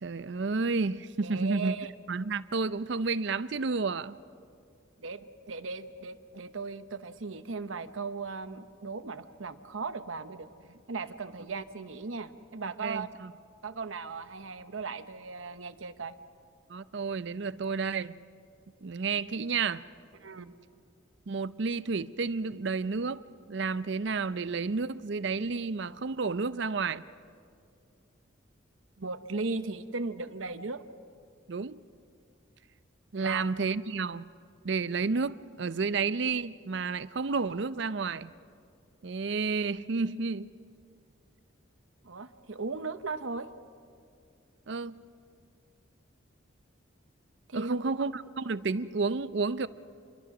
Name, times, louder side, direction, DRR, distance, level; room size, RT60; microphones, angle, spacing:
voice 1, 0.0-1.8 2.1-4.2 12.6-13.3 16.7-18.2 18.8-19.8 21.3-23.2 23.5-27.0 31.5-31.8 33.1-34.3 34.6-38.3 39.0-40.5 44.7-45.0 47.5-49.7, right 4 dB, 60° right, 0.5 m, -31 dB
voice 2, 1.2-1.9 5.0-13.1 13.6-16.1 20.2-20.5 29.0-30.8 33.1-33.4 42.0-43.5 47.5-48.1, right 4 dB, 80° right, 0.9 m, -37 dB
28.0 x 22.5 x 6.0 m
head